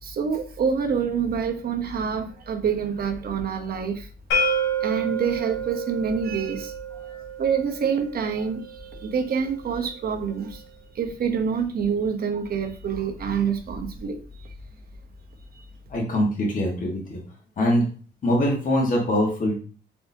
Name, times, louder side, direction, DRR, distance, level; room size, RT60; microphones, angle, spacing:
voice 1, 0.0-4.1 4.8-6.7 7.4-10.6 10.9-14.5 15.5-15.6, right 6 dB, 50° right, 5 dB, 0.8 m, -27 dB
sound 1, 4.3-10.1, right 3 dB, 75° left, 1.7 m, -30 dB
voice 2, 15.9-17.2 17.6-17.8 18.2-19.6, equal, 40° left, -2 dB, 1.5 m, -23 dB
4.2 x 3.4 x 2.7 m, 0.39 s
cardioid pair, 90°, 20 cm